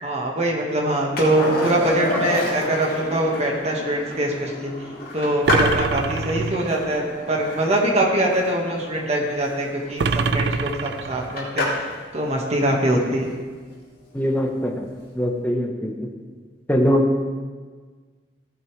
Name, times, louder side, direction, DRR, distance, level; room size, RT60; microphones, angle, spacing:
voice 1, 0.0-4.7 5.1-11.7 12.1-13.3, right 1 dB, 35° right, -1 dB, 1.7 m, -23 dB
Skateboard, 1.2-12.0 14.6-14.7, left 1 dB, 55° left, 2.6 m, -30 dB
sound 1, 5.4-6.9 10.0-11.5, right 4 dB, 65° right, 0.4 m, -25 dB
voice 2, 14.1-14.9 15.1-15.9 16.7-17.1, equal, 10° left, 0 dB, 1.1 m, -21 dB
15.5 x 8.6 x 3.3 m, 1.5 s
head